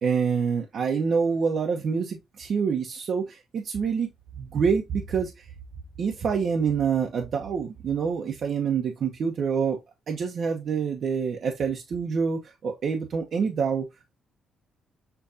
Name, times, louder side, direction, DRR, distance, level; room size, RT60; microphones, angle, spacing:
voice 1, 0.0-4.1 4.4-5.4 6.0-9.8 10.1-13.9, right 6 dB, 55° right, 0.9 m, -26 dB
6.8 x 2.5 x 2.7 m
cardioid pair, 90°, 0 cm